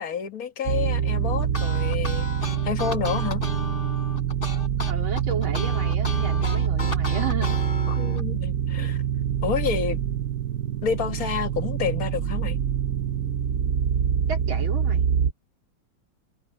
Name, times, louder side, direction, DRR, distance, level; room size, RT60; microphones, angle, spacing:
voice 1, 0.0-2.3 2.6-3.4 7.9-9.0 9.4-10.0 10.8-12.6, left 7 dB, 45° left, 1.8 m, -29 dB
sound 1, 0.7-15.3, right 8 dB, 55° right, 1.1 m, -25 dB
sound 2, 1.4-8.2, left 2 dB, 25° left, 4.4 m, -34 dB
voice 2, 4.9-7.6 14.3-15.1, right 5 dB, 80° right, 3.7 m, -33 dB
omnidirectional pair, 2.2 m